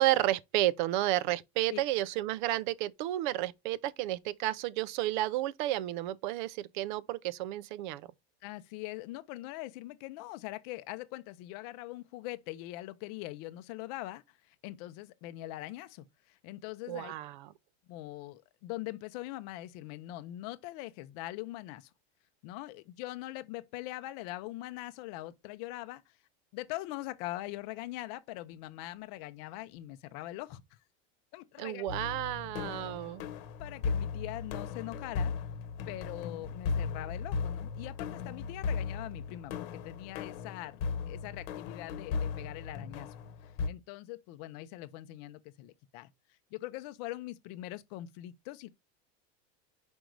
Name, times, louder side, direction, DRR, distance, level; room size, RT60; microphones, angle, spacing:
voice 1, 0.0-8.1 16.9-17.5 31.6-33.2, right 15 dB, 50° right, 0.5 m, -31 dB
voice 2, 8.4-17.1 17.9-21.9 22.4-26.1 26.5-30.6 31.3-31.9 33.6-35.3 35.9-40.8 41.1-43.1 43.6-46.1 46.5-48.7, left 16 dB, 40° left, 0.6 m, -42 dB
sound 1, 31.9-43.7, left 5 dB, 60° left, 1.1 m, -36 dB
5.3 x 5.1 x 4.6 m
supercardioid pair, 180°, 32 cm